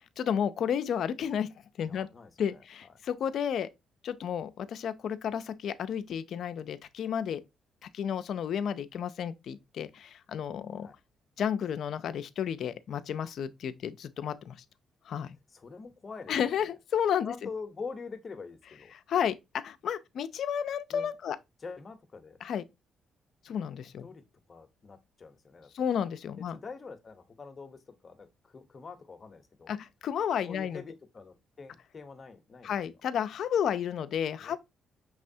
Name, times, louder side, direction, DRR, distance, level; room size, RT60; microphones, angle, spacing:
voice 1, 0.2-1.5 1.8-2.1 2.4-3.7 4.0-7.4 7.8-10.9 11.4-14.6 15.1-15.4 16.3-17.3 19.1-19.3 19.6-21.4 22.4-22.6 23.4-24.1 25.7-26.6 29.7-30.8 32.6-34.6, left 8 dB, 65° left, 0.4 m, -32 dB
voice 2, 1.8-3.0 10.8-11.0 15.5-16.3 17.2-18.9 20.9-21.1 21.6-22.4 24.0-24.2 24.5-25.7 26.4-29.8 30.5-32.8 34.4-34.6, left 4 dB, 35° left, 0.8 m, -45 dB
6.1 x 3.2 x 2.7 m
cardioid pair, 90°, 0 cm